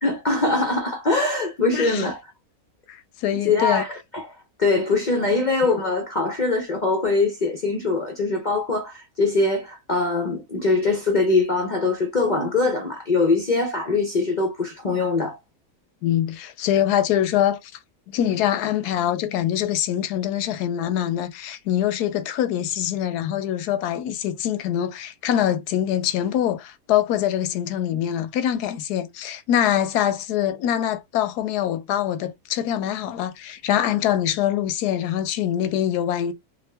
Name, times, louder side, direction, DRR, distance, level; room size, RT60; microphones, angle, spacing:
voice 1, 0.0-2.2 3.4-15.4, left 3 dB, 55° left, 0.5 m, -22 dB
voice 2, 1.7-2.0 2.9-3.8 16.0-17.7 18.1-36.3, left 11 dB, 85° left, 1.2 m, -24 dB
3.6 x 2.1 x 3.3 m
omnidirectional pair, 1.6 m